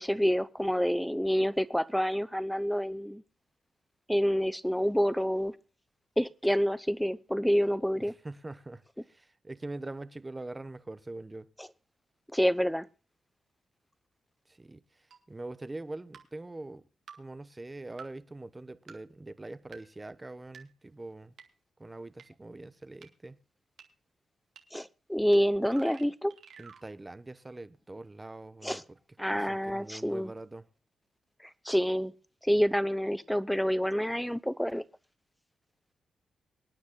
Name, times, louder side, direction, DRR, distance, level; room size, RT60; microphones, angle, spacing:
voice 1, 0.0-3.2 4.1-5.5 6.2-8.1 11.6-11.7 12.3-12.9 24.7-26.3 28.6-28.8 29.2-30.3 31.6-32.1 32.4-34.8, equal, 5° left, 0.7 m, -28 dB
voice 2, 8.1-11.5 14.5-16.8 17.2-21.3 21.8-23.4 26.6-29.0 29.3-30.6, right 2 dB, 20° right, 1.1 m, -43 dB
sound 1, 15.1-15.2 16.1-16.2 17.1-17.2 18.0-18.1 18.9-19.0 19.7-19.8 20.5-20.6 21.4-21.5 22.2-22.3 23.0-23.1 23.8-23.9 24.6-24.7 25.3-25.4 25.6-26.8, right 6 dB, 75° right, 1.9 m, -49 dB
25.0 x 9.5 x 2.3 m
cardioid pair, 75°, 0 cm